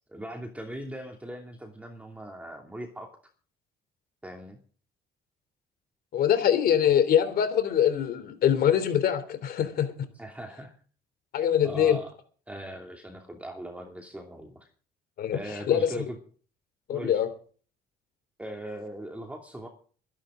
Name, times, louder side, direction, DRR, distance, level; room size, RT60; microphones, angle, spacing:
voice 1, 0.1-3.1 4.2-4.6 10.1-10.7 11.6-12.1 12.5-14.7 15.3-16.2 16.9-17.1 18.4-19.7, right 1 dB, 10° right, 2 dB, 2.6 m, -39 dB
voice 2, 6.1-9.9 11.3-12.0 15.2-15.9 16.9-17.3, left 9 dB, 65° left, 11 dB, 3.3 m, -23 dB
23.0 x 11.0 x 3.8 m, 0.42 s
cardioid pair, 110°, 17 cm